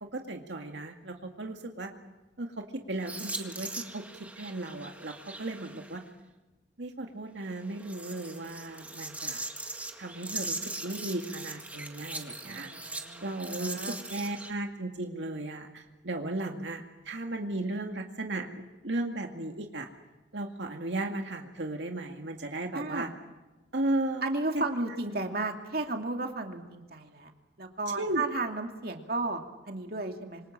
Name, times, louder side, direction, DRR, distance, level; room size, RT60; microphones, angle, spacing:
voice 1, 0.1-1.9 2.4-4.0 4.4-6.0 6.8-9.5 10.0-10.6 10.8-18.5 18.8-19.9 20.3-23.1 23.7-24.3 24.5-24.6 28.0-28.2, right 2 dB, 90° right, 3 dB, 2.2 m, -35 dB
sound 1, 3.0-6.0 7.6-14.5, right 2 dB, 10° right, 1.8 m, -40 dB
voice 2, 12.4-14.0 22.7-23.1 24.2-27.3 27.6-30.4, right 2 dB, 55° right, 3 dB, 2.5 m, -34 dB
26.5 x 25.5 x 7.5 m, 1.1 s
head